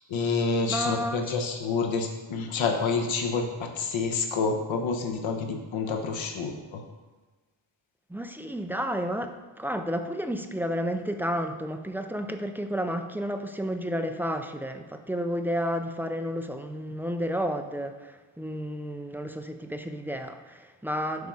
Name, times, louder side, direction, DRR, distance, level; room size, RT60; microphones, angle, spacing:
voice 1, 0.0-6.8, left 4 dB, 75° left, 3 dB, 1.1 m, -28 dB
voice 2, 0.7-1.3 8.1-18.1 18.4-21.3, equal, 5° right, 6 dB, 0.3 m, -31 dB
8.3 x 5.3 x 4.7 m, 1.2 s
wide cardioid pair, 135°, 46 cm